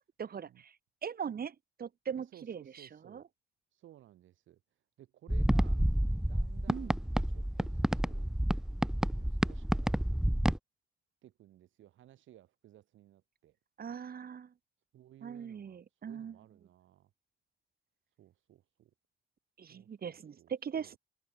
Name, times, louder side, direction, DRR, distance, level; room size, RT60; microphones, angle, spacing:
voice 1, 0.2-0.7 1.0-3.2 6.7-6.9 13.8-14.5 15.2-16.4 19.6-21.0, right 7 dB, 50° right, 3.7 m, -40 dB
voice 2, 2.2-3.3 3.7-4.6 5.0-5.9 6.2-8.3 9.2-10.0 11.2-13.6 14.9-17.1 18.2-18.9 19.7-20.5 20.8-21.0, right 12 dB, 80° right, 4.7 m, -58 dB
sound 1, 5.3-10.6, equal, 5° right, 0.9 m, -30 dB
cardioid pair, 90°, 20 cm